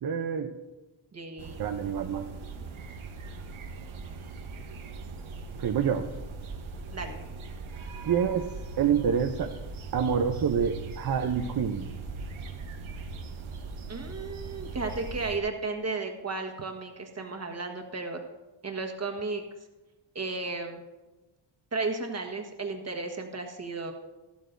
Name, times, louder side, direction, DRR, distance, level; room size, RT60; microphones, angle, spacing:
voice 1, 0.0-0.5 1.6-2.3 5.6-6.0 8.0-9.5 9.9-11.9, right 7 dB, 50° right, 5 dB, 0.7 m, -27 dB
voice 2, 1.1-1.6 6.9-7.2 13.9-18.2 18.6-19.4 20.1-20.8 21.7-23.9, right 3 dB, 35° right, 3 dB, 1.4 m, -34 dB
sound 1, 1.4-15.4, right 4 dB, 85° right, 1.2 m, -40 dB
13.5 x 12.5 x 2.6 m, 1.1 s
wide cardioid pair, 100°, 47 cm